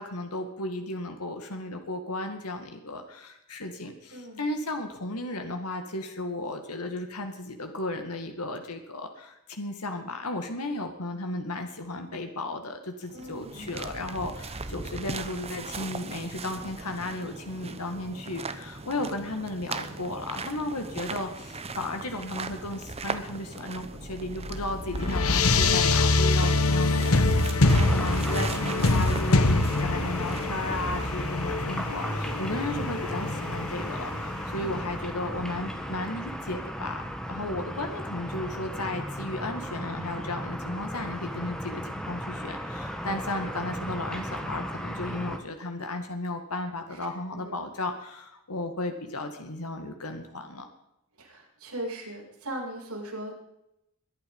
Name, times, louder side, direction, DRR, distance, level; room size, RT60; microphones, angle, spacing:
voice 1, 0.0-37.0 37.3-50.7, left 2 dB, 90° left, 5 dB, 2.1 m, -34 dB
voice 2, 4.1-4.4 13.1-13.7 25.0-25.4 34.6-34.8 46.9-47.0 47.3-47.7 51.2-53.4, right 1 dB, 80° right, -4 dB, 7.0 m, -39 dB
sound 1, 13.0-31.3, right 4 dB, 30° right, 1.0 m, -39 dB
sound 2, 24.0-34.8, left 3 dB, 65° left, 1.2 m, -25 dB
sound 3, 27.6-45.4, equal, 5° left, 1.5 m, -34 dB
21.5 x 11.0 x 5.5 m, 0.82 s
head